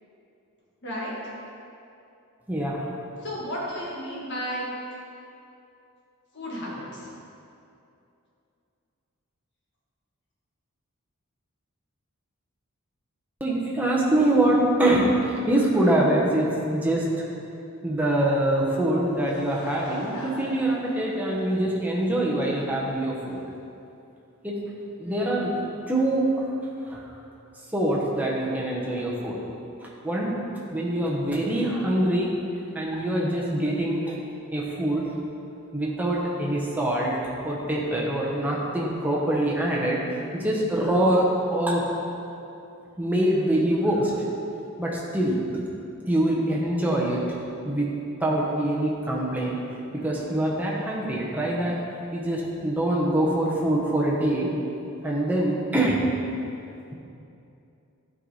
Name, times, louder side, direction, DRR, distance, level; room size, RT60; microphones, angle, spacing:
voice 1, 0.8-1.1 3.2-4.7 6.3-7.1, equal, 50° left, -5 dB, 1.8 m, -33 dB
voice 2, 2.5-2.8 13.4-17.0 17.8-23.4 24.4-24.6 25.0-25.5 25.9-26.4 26.8-27.0 27.7-29.4 29.8-32.3 32.7-34.1 34.5-35.1 35.7-37.2 37.4-40.0 40.3-41.9 43.0-44.1 44.8-45.4 46.1-47.2 47.6-49.6 49.9-51.8 52.1-54.5 55.0-56.0, right 1 dB, 5° right, -4 dB, 1.0 m, -24 dB
Laughter / Crowd, 19.0-22.7, left 1 dB, 85° left, 1.2 m, -41 dB
11.0 x 4.9 x 4.1 m, 2.7 s
head